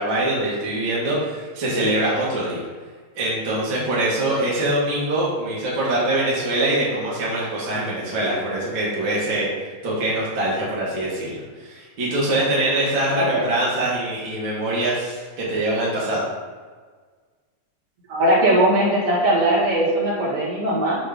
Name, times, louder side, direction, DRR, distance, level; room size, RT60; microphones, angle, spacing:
voice 1, 0.0-2.6 3.1-9.5 9.8-16.2, right 1 dB, 70° right, -7 dB, 1.1 m, -23 dB
voice 2, 13.1-13.5 18.1-21.0, right 1 dB, 45° right, -6 dB, 2.1 m, -19 dB
8.4 x 3.7 x 5.1 m, 1.5 s
omnidirectional pair, 4.8 m